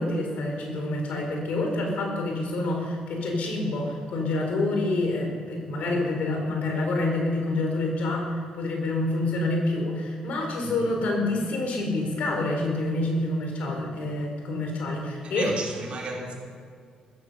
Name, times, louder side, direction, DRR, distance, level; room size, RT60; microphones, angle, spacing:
voice 1, 0.0-15.5, left 2 dB, 70° left, 4.3 m, -27 dB
voice 2, 10.6-10.9 15.2-16.3, right 3 dB, 50° right, 3.9 m, -34 dB
15.0 x 14.5 x 5.5 m
cardioid pair, 90°, 3 cm